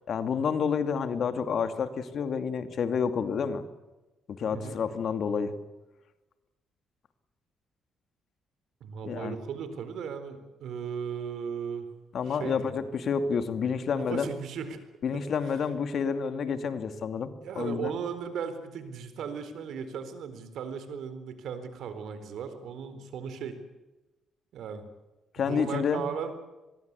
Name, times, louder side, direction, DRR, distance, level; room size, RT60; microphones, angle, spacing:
voice 1, 0.1-3.6 4.3-5.5 9.0-9.4 12.1-14.3 15.0-17.9 25.3-26.0, left 6 dB, 60° left, 9 dB, 2.5 m, -29 dB
voice 2, 8.8-11.9 12.3-12.8 13.9-14.8 15.1-15.2 17.4-23.6 24.5-24.8 25.5-26.3, right 7 dB, 75° right, 10 dB, 4.1 m, -36 dB
25.0 x 21.5 x 8.3 m, 1.1 s
cardioid pair, 90°, 0 cm